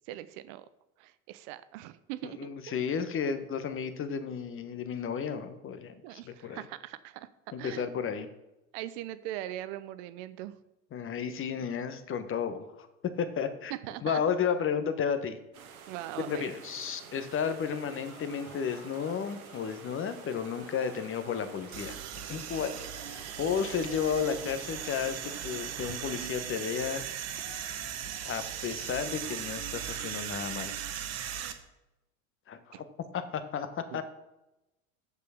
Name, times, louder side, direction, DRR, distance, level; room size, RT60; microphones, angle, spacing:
voice 1, 0.1-0.7 1.0-2.7 6.0-7.3 7.6-7.9 8.7-10.6 13.7-14.2 15.9-16.5 31.2-31.5 32.7-32.8 33.9-34.0, right 14 dB, 55° right, 14 dB, 0.8 m, -41 dB
voice 2, 2.2-6.6 7.5-8.3 10.9-13.7 14.0-15.4 16.2-22.0 22.3-22.7 23.4-27.0 28.2-30.8 32.5-32.8 33.1-34.0, left 7 dB, 30° left, 10 dB, 1.2 m, -33 dB
sound 1, 15.5-26.3, right 7 dB, 80° right, 1.4 m, -50 dB
Cheering / Applause, 17.8-30.4, left 3 dB, 80° left, 3.1 m, -55 dB
sound 2, 21.7-31.5, right 9 dB, 35° right, 1.1 m, -38 dB
6.9 x 6.7 x 6.9 m, 0.93 s
hypercardioid pair, 85°, 42 cm